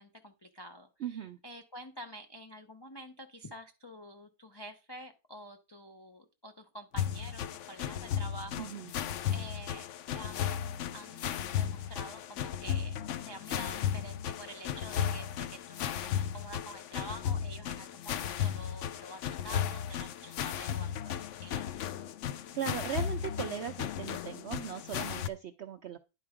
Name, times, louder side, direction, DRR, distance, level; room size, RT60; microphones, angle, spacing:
voice 1, 0.0-8.7 9.0-9.9 10.1-13.0 13.2-21.6, equal, 40° left, 3 dB, 0.3 m, -48 dB
voice 2, 1.0-1.4 8.6-8.9 22.5-26.0, right 9 dB, 65° right, 8 dB, 0.7 m, -38 dB
sound 1, 6.9-25.3, left 9 dB, 65° left, 0.8 m, -35 dB
10.0 x 4.3 x 4.9 m, 0.28 s
omnidirectional pair, 1.6 m